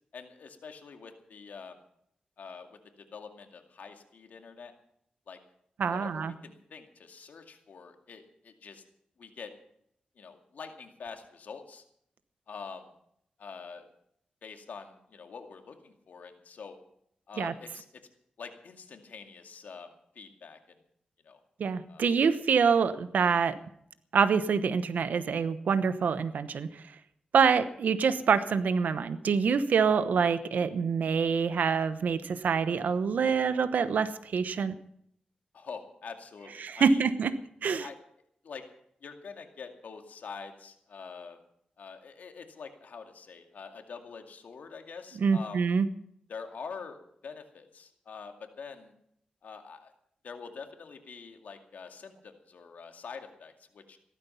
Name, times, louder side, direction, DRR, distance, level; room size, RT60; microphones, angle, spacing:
voice 1, 0.1-1.8 2.4-4.7 5.3-5.4 5.9-8.8 9.2-9.5 10.2-11.8 12.5-12.9 13.4-13.9 14.4-16.8 17.3-17.8 18.4-20.6 21.2-21.4 21.9-22.1 35.5-37.0 37.7-38.0 38.4-38.6 39.0-41.4 41.8-45.7 46.3-48.9 49.4-49.9 50.2-54.0, left 5 dB, 80° left, 5 dB, 2.3 m, -45 dB
voice 2, 5.8-6.3 17.4-17.5 21.6-23.6 24.1-26.8 27.3-34.7 36.6-37.3 37.6-37.9 45.2-45.9, right 6 dB, 80° right, 13 dB, 1.0 m, -26 dB
16.0 x 13.0 x 5.7 m, 0.70 s
cardioid pair, 80°, 3 cm